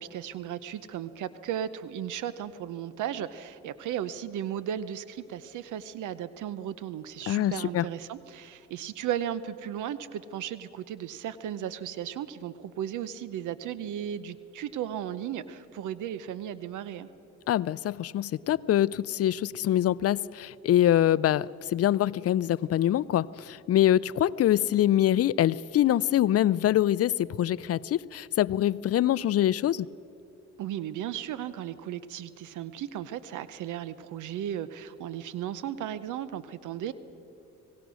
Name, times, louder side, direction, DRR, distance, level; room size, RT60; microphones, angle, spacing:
voice 1, 0.0-17.1 30.6-36.9, right 10 dB, 80° right, 0.8 m, -35 dB
voice 2, 7.3-7.9 17.5-29.9, left 12 dB, 55° left, 0.5 m, -24 dB
25.0 x 18.5 x 6.3 m
cardioid pair, 90°, 30 cm